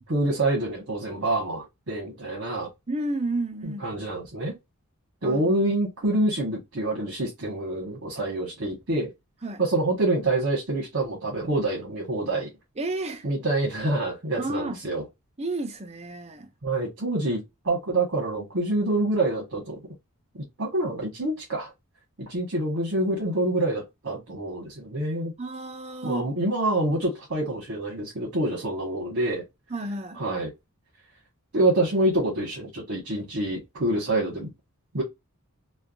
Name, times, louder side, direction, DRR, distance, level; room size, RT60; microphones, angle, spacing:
voice 1, 0.1-2.7 3.6-4.6 5.2-9.1 9.6-12.5 13.2-15.0 16.6-19.8 20.3-21.7 22.2-25.3 26.0-29.4 30.2-30.5 31.5-34.5 34.9-35.0, right 2 dB, 55° right, 1.2 m, -26 dB
voice 2, 2.9-3.9 5.2-5.6 9.4-9.6 12.8-13.3 14.4-14.8 15.4-16.5 25.4-26.3 29.7-30.2, right 2 dB, 30° right, 0.5 m, -31 dB
3.3 x 2.2 x 2.4 m
head